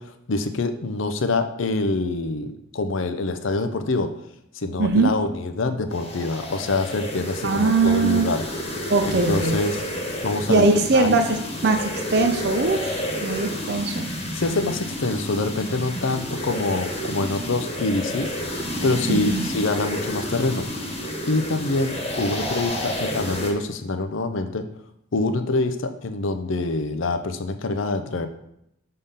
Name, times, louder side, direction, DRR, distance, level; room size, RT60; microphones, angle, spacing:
voice 1, 0.0-4.1 4.5-8.4 9.0-9.8 10.2-10.7 10.9-11.2 14.3-18.3 18.8-20.7 21.3-24.7 25.1-28.3, left 2 dB, 65° left, 9 dB, 0.6 m, -25 dB
voice 2, 4.8-5.1 7.4-8.2 8.9-9.6 10.5-11.4 11.6-13.0 13.2-14.0 19.1-19.5, right 3 dB, 50° right, 4 dB, 0.6 m, -20 dB
sound 1, 5.9-23.5, equal, 30° left, 1.3 m, -30 dB
6.7 x 3.7 x 5.6 m, 0.79 s
head